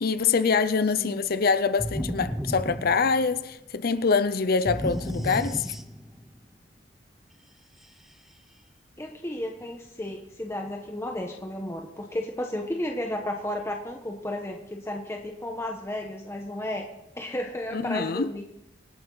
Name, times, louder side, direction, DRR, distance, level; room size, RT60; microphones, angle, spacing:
voice 1, 0.0-5.6 17.7-18.3, left 5 dB, 55° left, 0.6 m, -25 dB
sound 1, 1.8-3.5 4.7-6.3, equal, ahead, 0.6 m, -33 dB
voice 2, 9.0-16.9 17.1-18.4, left 1 dB, 15° left, 1.1 m, -33 dB
26.0 x 8.8 x 3.9 m
head